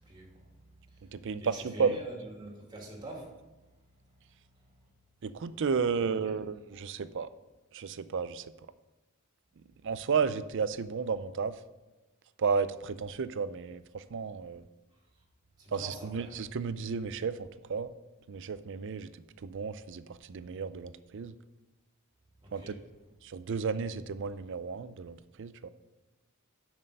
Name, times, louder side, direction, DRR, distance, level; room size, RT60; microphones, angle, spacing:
voice 1, 0.0-3.4 6.0-6.3 9.6-9.9 15.6-16.4 22.4-22.8, right 1 dB, 20° right, -2 dB, 2.4 m, -46 dB
voice 2, 1.1-2.0 5.2-7.3 7.7-8.5 9.8-11.6 12.4-14.6 15.7-17.9 18.3-19.1 19.4-21.4 22.5-22.8 23.2-25.7, right 5 dB, 60° right, 14 dB, 0.4 m, -33 dB
7.5 x 6.1 x 6.6 m, 1.1 s
head